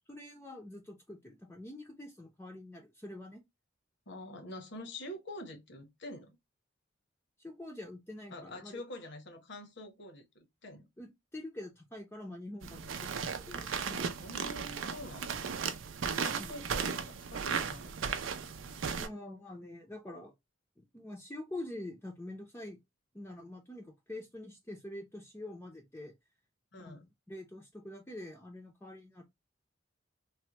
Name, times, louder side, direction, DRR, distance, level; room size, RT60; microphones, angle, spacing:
voice 1, 0.1-3.4 7.4-8.8 11.0-14.3 16.4-16.5 19.0-20.3 20.8-22.8 23.1-26.1 26.8-29.2, left 1 dB, 10° left, 0.5 m, -46 dB
voice 2, 4.1-6.3 8.3-10.8 14.2-15.5 16.2-18.2 26.7-27.0, left 1 dB, 65° left, 0.9 m, -46 dB
sound 1, 12.6-19.1, right 6 dB, 80° right, 0.5 m, -36 dB
3.3 x 2.1 x 2.8 m
head